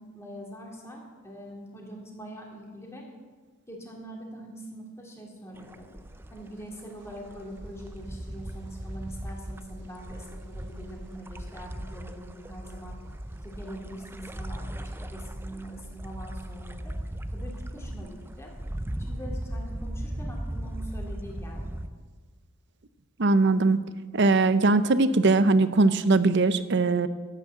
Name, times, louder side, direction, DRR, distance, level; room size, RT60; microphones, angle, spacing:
voice 1, 0.0-3.0 3.7-5.9 6.3-12.9 13.4-16.9 17.3-18.5 19.1-21.8, equal, 15° left, -1 dB, 2.5 m, -43 dB
sound 1, 5.6-21.9, right 1 dB, 10° right, 0.5 m, -38 dB
voice 2, 23.2-23.8 24.1-27.1, right 3 dB, 55° right, 13 dB, 0.7 m, -21 dB
12.5 x 9.1 x 7.6 m, 1.4 s
head